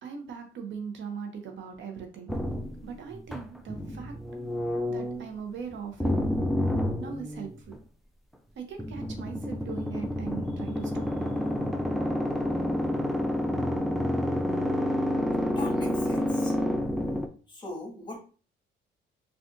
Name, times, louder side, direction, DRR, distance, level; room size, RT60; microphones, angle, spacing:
voice 1, 0.0-2.3 2.8-4.2 4.9-6.1 7.0-7.7 8.6-11.6, right 6 dB, 70° right, 5 dB, 0.7 m, -40 dB
sound 1, 2.3-5.3 6.0-7.8 8.8-17.3, left 1 dB, ahead, 0.4 m, -29 dB
voice 2, 15.5-16.5 17.5-18.2, left 2 dB, 20° left, 0 dB, 1.4 m, -39 dB
3.7 x 2.4 x 2.5 m, 0.38 s
cardioid pair, 90°, 20 cm